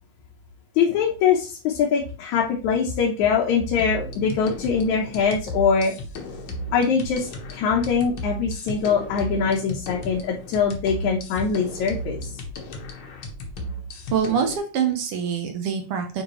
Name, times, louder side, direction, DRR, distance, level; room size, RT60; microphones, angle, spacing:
voice 1, 0.8-5.9 6.7-12.3, left 6 dB, 75° left, -1 dB, 2.4 m, -23 dB
sound 1, 3.8-14.6, equal, 55° left, 1.6 m, -35 dB
voice 2, 14.1-16.2, right 7 dB, 65° right, 4 dB, 1.5 m, -25 dB
9.5 x 3.6 x 3.0 m, 0.34 s
omnidirectional pair, 3.5 m